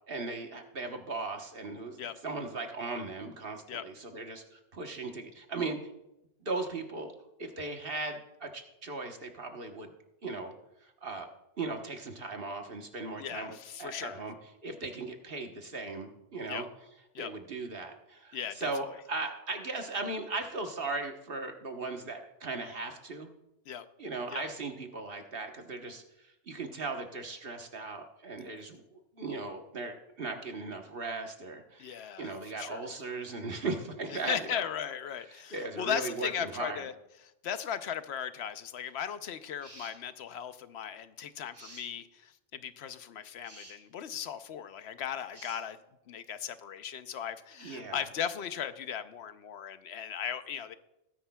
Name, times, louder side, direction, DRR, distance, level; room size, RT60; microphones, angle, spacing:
voice 1, 0.1-5.9 6.4-7.1 7.4-9.9 10.2-10.5 11.0-11.3 11.6-14.3 14.6-16.7 17.2-23.3 24.0-34.7 35.2-36.8 47.6-48.1, right 3 dB, 55° right, 4 dB, 1.4 m, -38 dB
voice 2, 13.2-14.2 16.5-16.6 17.1-17.3 18.3-18.7 23.7-23.8 24.3-24.4 31.8-32.9 34.3-36.9 37.4-42.1 42.5-45.8 46.1-50.8, left 8 dB, 65° left, 11 dB, 0.9 m, -37 dB
sound 1, 39.6-40.0 41.5-41.9 43.4-43.8 45.3-45.6, right 2 dB, 85° right, 3.5 m, -50 dB
20.0 x 10.0 x 2.3 m, 0.88 s
omnidirectional pair, 1.2 m